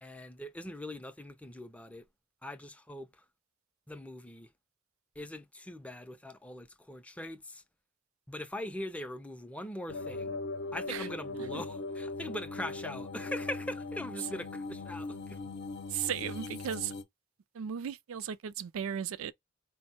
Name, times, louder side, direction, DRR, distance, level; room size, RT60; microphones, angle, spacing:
voice 1, 0.0-2.0 2.4-3.2 3.9-4.5 5.2-7.6 8.3-10.3 10.7-15.4, left 1 dB, 5° left, 0.4 m, -41 dB
sound 1, 9.9-17.0, left 3 dB, 55° left, 0.7 m, -39 dB
voice 2, 15.9-16.9 17.5-19.3, right 8 dB, 85° right, 0.4 m, -36 dB
4.3 x 2.0 x 4.1 m
head